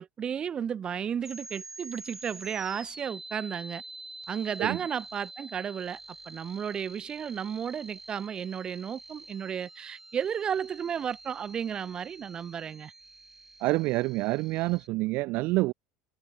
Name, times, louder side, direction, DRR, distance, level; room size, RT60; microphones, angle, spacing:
voice 1, 0.0-3.8 4.3-6.0 6.3-12.9, right 8 dB, 25° right, 1.8 m, -33 dB
sound 1, 1.2-14.9, right 2 dB, 10° right, 2.7 m, -47 dB
voice 2, 13.6-15.7, right 21 dB, 50° right, 0.8 m, -27 dB
cardioid pair, 150°, 4 cm